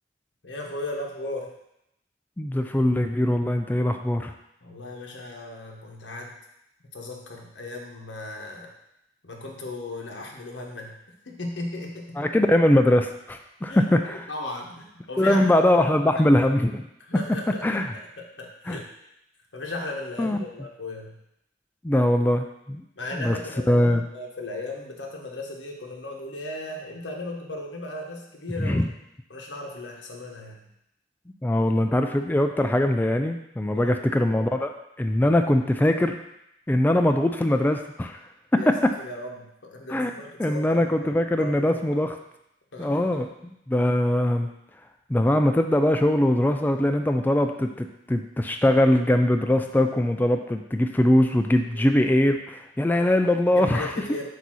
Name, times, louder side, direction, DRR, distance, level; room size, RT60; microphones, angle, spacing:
voice 1, 0.4-1.5 4.6-6.3 6.9-8.7 9.2-10.9 11.2-12.3 13.7-15.5 17.1-18.9 19.5-21.1 23.0-23.9 24.1-28.8 29.3-30.7 33.7-33.9 38.5-42.0 42.7-43.2 51.7-51.9 53.5-54.3, left 2 dB, 90° left, 0 dB, 1.3 m, -36 dB
voice 2, 2.4-4.3 12.2-14.2 15.2-16.8 17.6-17.8 18.7-18.8 20.2-20.4 21.8-22.8 23.1-23.4 23.7-24.0 28.6-28.9 31.4-34.7 35.0-36.1 36.7-38.2 38.7-38.8 39.9-40.1 40.4-42.2 42.8-44.5 45.1-53.9, left 1 dB, 10° left, 5 dB, 0.3 m, -22 dB
8.0 x 2.8 x 6.2 m, 0.82 s
head